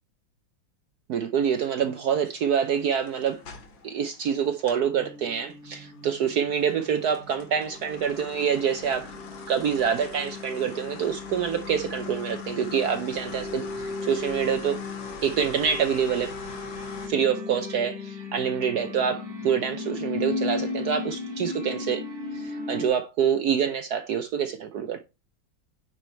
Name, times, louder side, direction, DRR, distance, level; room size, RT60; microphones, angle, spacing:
voice 1, 1.1-3.4 3.8-9.1 9.5-14.8 15.2-16.3 17.1-22.0 22.3-25.0, right 7 dB, 65° right, 1.1 m, -26 dB
sound 1, 1.5-4.9 5.3-17.1, left 4 dB, 80° left, 2.4 m, -43 dB
sound 2, 5.0-22.9, left 4 dB, 30° right, 2.6 m, -36 dB
9.2 x 4.8 x 4.4 m
omnidirectional pair, 2.1 m